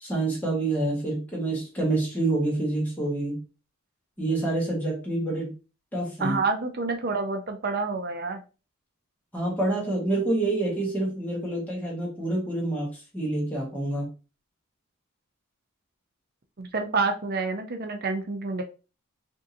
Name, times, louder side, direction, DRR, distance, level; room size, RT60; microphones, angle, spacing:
voice 1, 0.0-3.4 4.2-5.5 5.9-6.4 9.3-14.1, right 2 dB, 5° left, -4 dB, 1.5 m, -27 dB
voice 2, 6.2-8.4 16.6-18.6, right 3 dB, 45° right, 5 dB, 0.6 m, -28 dB
5.0 x 2.7 x 2.7 m, 0.33 s
head